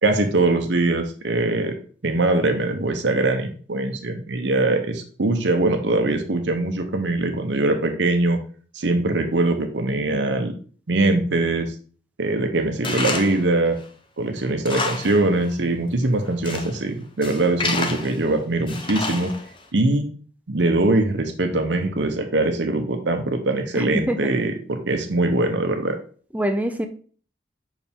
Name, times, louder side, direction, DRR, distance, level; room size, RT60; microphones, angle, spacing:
voice 1, 0.0-1.7 2.0-8.4 8.7-10.5 10.9-11.7 12.2-13.8 14.2-19.3 19.7-20.1 20.5-26.0, right 2 dB, 70° right, 5 dB, 0.8 m, -22 dB
Tools, 12.8-13.5 13.8-13.9 14.4-15.3 15.5-15.6 16.2-16.8 17.2-18.2 18.7-19.6, left 3 dB, 25° left, 0.7 m, -28 dB
voice 2, 23.7-24.3 26.3-26.9, right 1 dB, 10° right, 7 dB, 0.4 m, -24 dB
5.6 x 4.9 x 3.5 m, 0.42 s
head